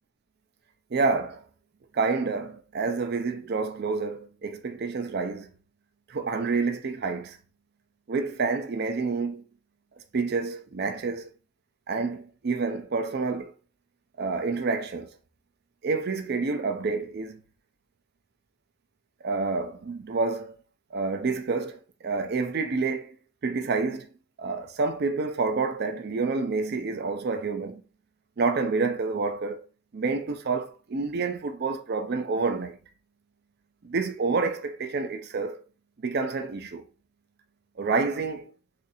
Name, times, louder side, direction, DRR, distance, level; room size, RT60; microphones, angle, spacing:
voice 1, 0.9-1.4 1.9-5.5 6.1-7.4 8.1-9.4 10.1-11.3 11.9-13.5 14.2-15.1 15.8-17.4 19.2-20.6 20.9-23.2 23.4-24.1 24.4-27.8 28.4-29.6 29.9-32.8 33.8-35.6 36.0-36.8 37.8-38.5, right 4 dB, 50° right, 0.4 m, -28 dB
2.6 x 2.5 x 4.0 m
head